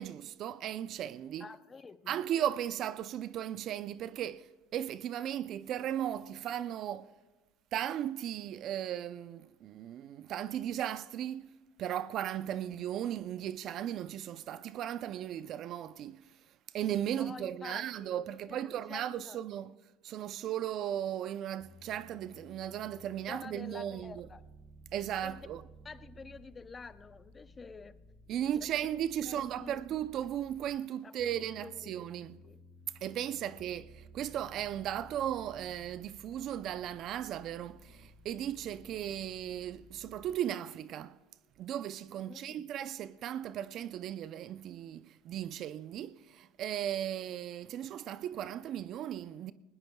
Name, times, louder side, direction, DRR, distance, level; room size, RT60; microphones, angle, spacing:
voice 1, 0.0-1.5 2.1-7.1 7.7-16.3 16.7-19.7 20.0-24.3 24.9-25.6 28.3-32.4 33.0-41.1 41.6-49.5, right 10 dB, 50° right, 0.5 m, -36 dB
voice 2, 1.4-2.2 17.1-19.4 23.3-24.4 25.2-25.5 25.8-28.0 28.4-28.8 29.3-29.8 31.0-31.3 31.6-31.8 32.4-32.6 42.3-42.6, left 4 dB, 25° left, 0.7 m, -48 dB
sound 1, 21.6-30.8 31.2-40.4, equal, 5° right, 5.2 m, -56 dB
19.5 x 19.0 x 2.3 m
hypercardioid pair, 90°, 0 cm